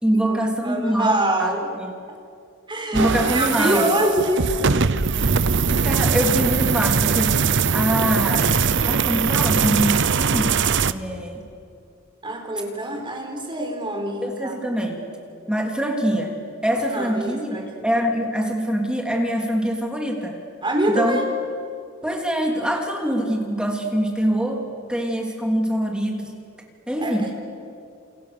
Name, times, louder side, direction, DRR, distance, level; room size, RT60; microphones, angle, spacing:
voice 1, 0.0-1.5 1.8-1.9 2.9-3.9 5.6-11.4 14.2-15.0 15.5-16.3 16.6-20.4 20.9-21.2 22.0-26.3 26.9-27.2, equal, 5° right, 1 dB, 3.0 m, -24 dB
voice 2, 0.6-1.7 2.7-4.8 12.2-14.5 16.9-17.9 20.6-21.3 27.0-27.3, right 1 dB, 25° right, 2 dB, 4.8 m, -25 dB
sound 1, 2.9-10.9, right 5 dB, 60° right, 0.8 m, -21 dB
30.0 x 28.5 x 7.0 m, 2.4 s
head